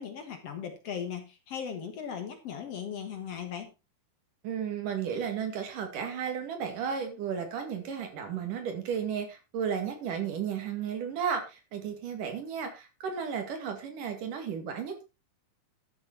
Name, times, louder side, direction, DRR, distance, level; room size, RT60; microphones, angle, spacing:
voice 1, 0.0-3.7, left 7 dB, 55° left, 6 dB, 2.2 m, -38 dB
voice 2, 4.4-15.0, right 7 dB, 80° right, 5 dB, 3.7 m, -34 dB
12.5 x 6.9 x 4.4 m, 0.28 s
omnidirectional pair, 3.7 m